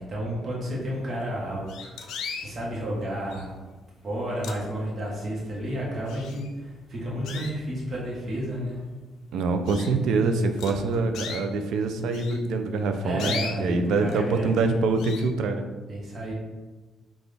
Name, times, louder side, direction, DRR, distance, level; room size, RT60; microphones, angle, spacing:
voice 1, 0.0-2.0 2.4-3.5 4.0-8.8 13.0-14.6 15.9-16.3, equal, 45° right, -5 dB, 1.1 m, -31 dB
sound 1, 1.0-1.1 1.7-2.5 3.3-3.7 4.1-5.1 5.5-5.6 6.1-6.7 7.2-8.0 8.6-8.7 9.1-9.2 9.7-10.0 10.6-11.5 12.1-14.2 14.5-14.7 15.0-15.3, left 6 dB, 85° left, 0.4 m, -37 dB
voice 2, 9.3-15.6, right 3 dB, 80° right, 6 dB, 0.4 m, -25 dB
3.8 x 2.4 x 3.3 m, 1.2 s
cardioid pair, 90°, 0 cm